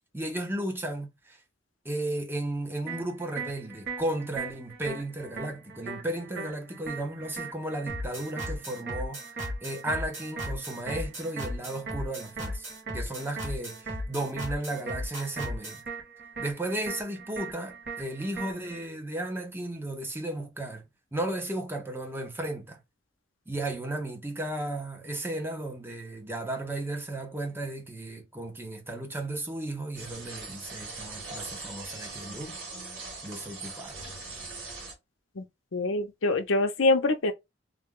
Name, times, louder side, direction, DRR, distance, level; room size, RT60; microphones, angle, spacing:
voice 1, 0.1-1.4 1.8-12.7 12.9-15.8 16.4-20.8 21.1-22.8 23.5-32.6 33.2-34.1, right 1 dB, 10° right, 0.8 m, -34 dB
sound 1, 2.9-18.9, right 5 dB, 60° right, 1.3 m, -41 dB
sound 2, 7.9-15.8, left 1 dB, 40° right, 2.0 m, -36 dB
sound 3, 29.9-34.9, right 3 dB, 80° right, 2.0 m, -41 dB
voice 2, 35.7-37.3, left 2 dB, 80° left, 0.7 m, -25 dB
3.3 x 2.3 x 3.6 m
head